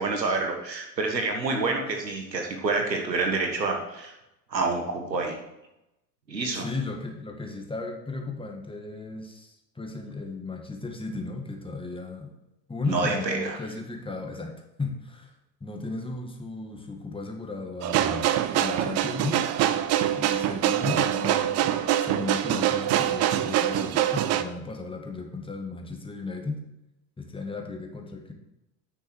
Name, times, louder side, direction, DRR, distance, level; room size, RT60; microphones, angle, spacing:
voice 1, 0.0-4.1 4.5-5.4 6.3-6.7 12.9-13.6, right 3 dB, 90° right, 3 dB, 1.6 m, -28 dB
voice 2, 6.5-12.3 12.7-15.3 15.6-18.3 18.5-19.5 20.2-21.7 22.0-26.6 27.2-28.3, left 3 dB, 10° left, 2 dB, 1.7 m, -35 dB
sound 1, 17.8-24.4, right 11 dB, 30° right, 0.6 m, -24 dB
9.9 x 6.4 x 4.7 m, 0.90 s
figure-of-eight pair, 75°, 49 cm